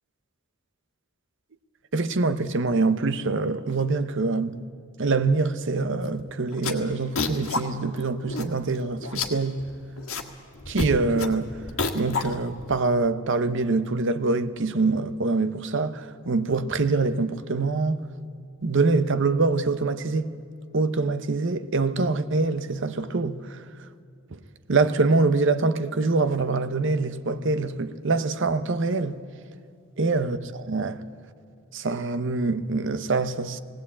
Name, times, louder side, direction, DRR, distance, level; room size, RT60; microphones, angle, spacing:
voice 1, 1.9-4.5 5.0-9.6 10.7-11.5 11.9-18.0 18.6-20.3 20.7-23.6 24.3-24.4 24.7-29.2 30.0-31.0 31.7-33.6, right 3 dB, 60° right, 0.8 m, -24 dB
sound 1, 6.0-6.2 6.5-7.6 8.0-8.1 8.3-8.8 9.0-10.3 10.6-12.8, left 3 dB, 85° left, 1.7 m, -30 dB
18.5 x 18.0 x 8.4 m
head